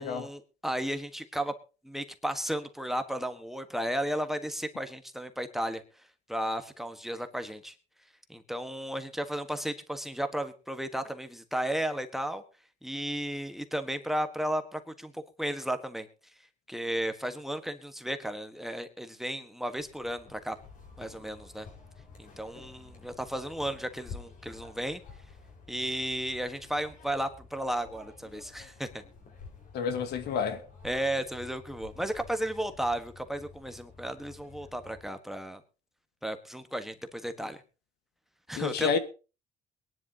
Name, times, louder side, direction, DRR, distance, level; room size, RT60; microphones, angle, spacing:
voice 1, 0.0-1.5 1.8-5.8 6.3-7.7 8.3-12.4 12.8-16.1 16.7-20.6 21.0-21.7 22.2-25.0 25.7-29.0 30.8-35.6 36.2-37.6 38.5-38.9, right 1 dB, ahead, 1.4 m, -34 dB
sound 1, 19.7-35.1, left 4 dB, 55° left, 5.1 m, -51 dB
voice 2, 29.7-30.7 38.6-39.0, left 6 dB, 75° left, 1.6 m, -29 dB
22.5 x 11.0 x 2.9 m
cardioid pair, 110°, 17 cm